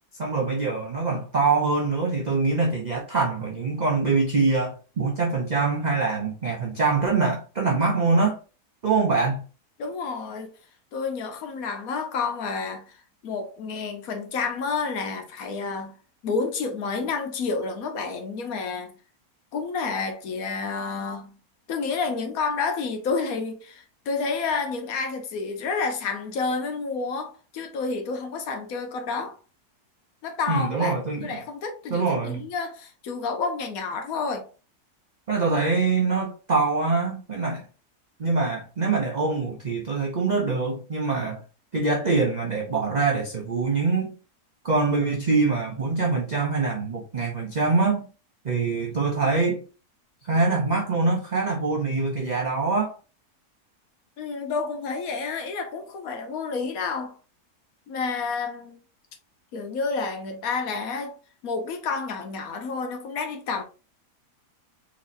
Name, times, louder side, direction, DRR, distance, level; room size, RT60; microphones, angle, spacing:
voice 1, 0.2-8.4 8.8-9.4 30.5-31.4 31.9-32.4 35.3-37.6 38.2-41.4 41.7-44.1 44.6-48.1 48.4-49.6 50.2-53.0, right 4 dB, 55° right, 0.4 m, -24 dB
voice 2, 9.8-10.5 10.9-13.0 13.2-15.9 16.2-18.9 19.5-21.3 21.7-29.4 30.2-30.9 31.2-34.5 54.2-57.2 57.9-58.8 59.5-61.2 61.4-63.6, left 4 dB, 65° left, 1.1 m, -29 dB
3.9 x 3.0 x 2.5 m
omnidirectional pair, 1.7 m